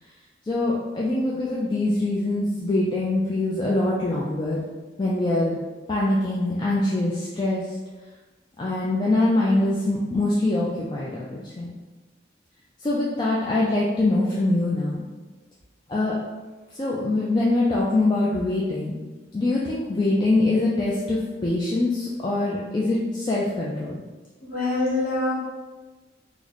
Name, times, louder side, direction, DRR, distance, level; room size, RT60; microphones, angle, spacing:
voice 1, 0.4-4.6 5.0-5.6 5.9-7.8 8.6-11.7 12.8-15.0 15.9-16.1 16.7-18.9 19.3-24.0, left 2 dB, 25° left, -6 dB, 0.3 m, -23 dB
voice 2, 24.4-25.3, left 2 dB, 45° left, -8 dB, 1.3 m, -24 dB
3.1 x 2.1 x 3.8 m, 1.2 s
head